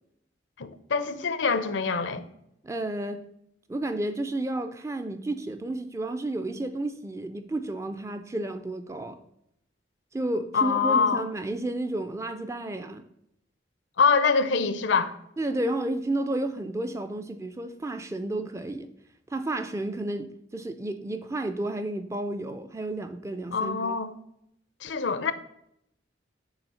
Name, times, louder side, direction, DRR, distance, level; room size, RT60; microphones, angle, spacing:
voice 1, 0.6-2.2 10.5-11.3 14.0-15.1 23.5-24.1 24.8-25.3, left 5 dB, 75° left, 0.6 m, -24 dB
voice 2, 2.6-3.2 3.7-9.2 10.1-13.1 15.4-18.9 19.3-24.0, right 1 dB, 15° right, 0.3 m, -31 dB
7.0 x 3.2 x 5.5 m
head